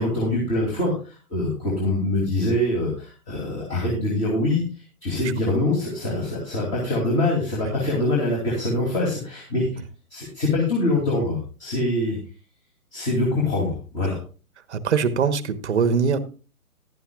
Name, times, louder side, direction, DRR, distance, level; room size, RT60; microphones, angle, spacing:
voice 1, 0.0-4.6 5.0-9.7 10.1-12.2 12.9-14.2, left 2 dB, 15° left, -2 dB, 2.8 m, -24 dB
voice 2, 14.7-16.2, right 6 dB, 50° right, 11 dB, 1.1 m, -22 dB
16.0 x 11.0 x 2.4 m, 0.34 s
figure-of-eight pair, 145°, 45 cm